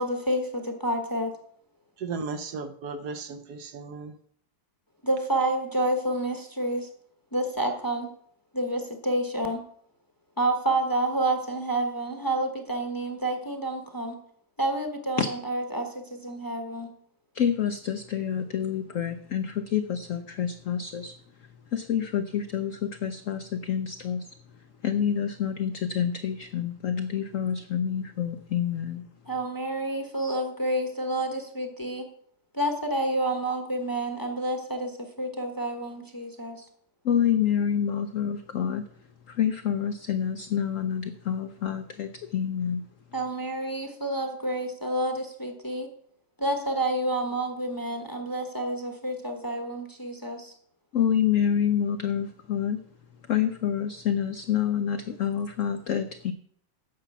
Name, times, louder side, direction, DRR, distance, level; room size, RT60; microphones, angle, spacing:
voice 1, 0.0-1.3 5.0-6.9 7.3-8.1 8.5-9.6 10.4-14.2 14.6-16.9 29.3-32.0 32.5-34.9 35.2-36.6 43.1-45.9 46.4-50.5, right 1 dB, 15° left, 4 dB, 0.8 m, -29 dB
voice 2, 2.0-4.1, right 4 dB, 65° right, 9 dB, 1.1 m, -35 dB
voice 3, 17.3-21.1 21.7-24.3 24.8-29.0 37.0-38.8 39.3-42.8 50.9-52.8 53.3-56.3, left 8 dB, 75° left, 8 dB, 0.7 m, -27 dB
10.0 x 5.8 x 7.1 m, 0.64 s
omnidirectional pair, 2.0 m